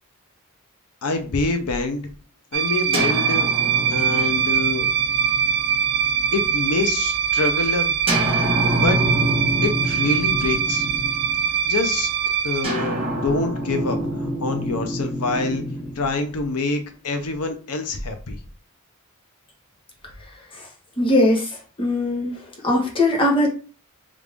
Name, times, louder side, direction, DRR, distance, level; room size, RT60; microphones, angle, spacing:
voice 1, 1.0-2.1 2.5-3.5 3.9-4.9 6.3-8.0 8.8-9.0 9.6-10.9 11.6-12.1 12.4-15.6 16.0-18.4, left 3 dB, 85° left, 6 dB, 0.7 m, -26 dB
sound 1, 2.5-12.6, right 7 dB, 50° right, 0.4 m, -22 dB
sound 2, 2.9-6.7 8.1-11.6 12.6-16.8, right 1 dB, 25° right, 1.1 m, -27 dB
voice 2, 21.0-23.5, left 1 dB, 25° left, -1 dB, 1.0 m, -21 dB
3.3 x 2.5 x 3.3 m, 0.37 s
head